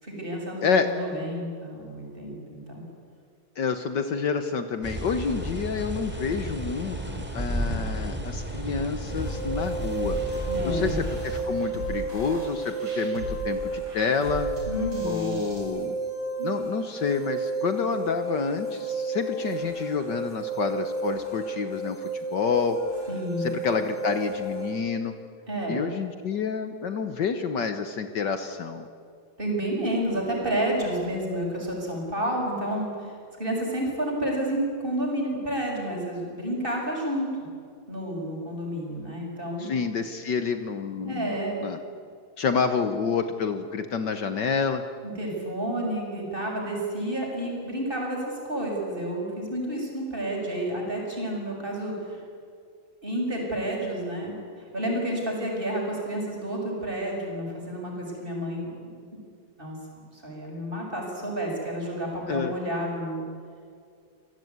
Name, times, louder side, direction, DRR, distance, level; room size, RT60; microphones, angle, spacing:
voice 1, 0.0-2.8 10.5-11.0 14.7-15.4 16.4-16.5 23.1-23.5 25.5-25.8 29.4-37.3 37.9-39.7 41.1-41.6 45.0-52.2 53.0-58.9 59.6-63.2, right 1 dB, 25° right, -1 dB, 7.0 m, -30 dB
voice 2, 3.6-10.2 10.6-14.5 15.0-16.0 16.4-22.8 23.4-25.1 25.7-28.9 39.6-41.8 42.4-44.8 62.3-62.5, left 5 dB, 60° left, 8 dB, 1.8 m, -28 dB
sound 1, 4.8-11.4, equal, 5° right, 3.2 m, -33 dB
sound 2, 9.1-24.7, right 3 dB, 35° left, 7.9 m, -32 dB
sound 3, 10.0-15.6, right 1 dB, 65° right, 7.9 m, -38 dB
28.0 x 18.0 x 9.6 m, 2.3 s
omnidirectional pair, 2.2 m